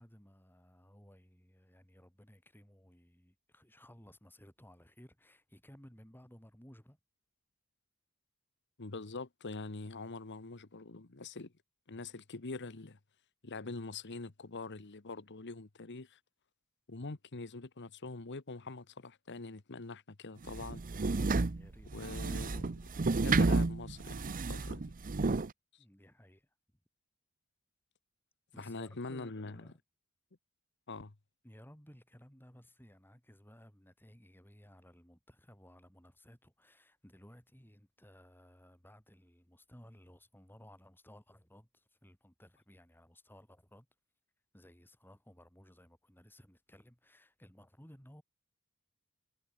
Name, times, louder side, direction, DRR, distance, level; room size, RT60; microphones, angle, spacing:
voice 1, 0.0-7.0 21.5-22.1 25.8-26.5 28.5-29.8 31.4-43.9 44.5-48.2, equal, 10° left, 7.2 m, -58 dB
voice 2, 8.8-11.5 11.9-13.0 13.4-16.2 16.9-20.8 21.9-22.9 23.2-24.8 25.7-25.8 28.6-29.7 30.9-31.1, left 3 dB, 55° left, 1.2 m, -44 dB
sound 1, 20.5-25.5, right 3 dB, 40° right, 0.7 m, -31 dB
head